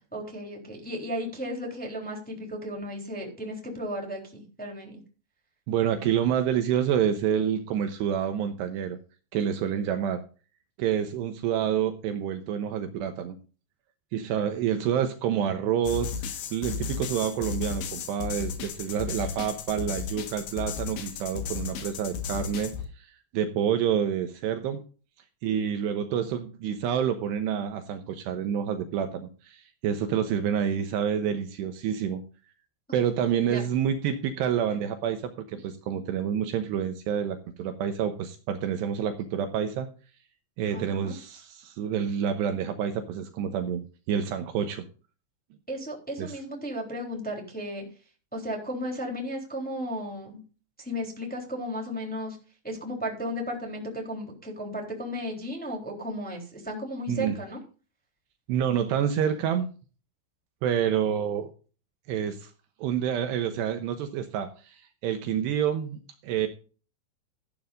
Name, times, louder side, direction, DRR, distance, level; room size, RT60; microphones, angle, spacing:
voice 1, 0.1-5.0 33.4-33.6 40.7-41.1 45.7-47.8 48.3-50.4 50.8-52.4 52.6-57.6, equal, ahead, 0 dB, 2.6 m, -34 dB
voice 2, 5.7-9.0 9.3-10.2 10.8-13.4 14.1-23.1 23.3-24.8 25.4-32.2 32.9-39.9 40.6-44.9 46.2-46.4 57.1-57.3 58.5-59.7 60.6-61.5 62.1-62.5 62.8-66.5, right 9 dB, 75° right, 7 dB, 2.8 m, -28 dB
sound 1, 15.9-22.9, left 7 dB, 70° left, 3.6 m, -35 dB
14.0 x 11.5 x 2.6 m, 0.36 s
omnidirectional pair, 5.4 m